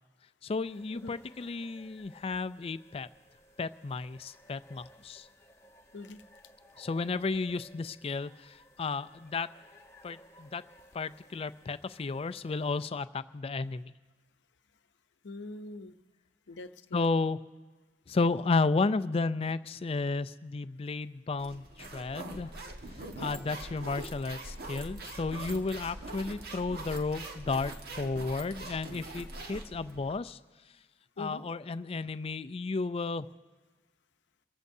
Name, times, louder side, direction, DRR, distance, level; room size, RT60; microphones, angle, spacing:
voice 1, 0.4-3.1 3.6-5.3 6.8-9.5 10.0-10.6 10.9-13.9 16.9-17.4 18.1-22.5 23.2-30.4 31.2-33.3, left 3 dB, 35° left, 13 dB, 0.4 m, -33 dB
sound 1, 0.6-12.8, equal, 15° left, 1.1 m, -59 dB
voice 2, 15.2-15.9 16.5-17.1 31.2-31.4, left 2 dB, 80° left, 10 dB, 0.7 m, -42 dB
sound 2, 21.4-30.2, right 2 dB, 60° right, 1.4 m, -43 dB
28.5 x 15.0 x 2.7 m, 1.3 s
head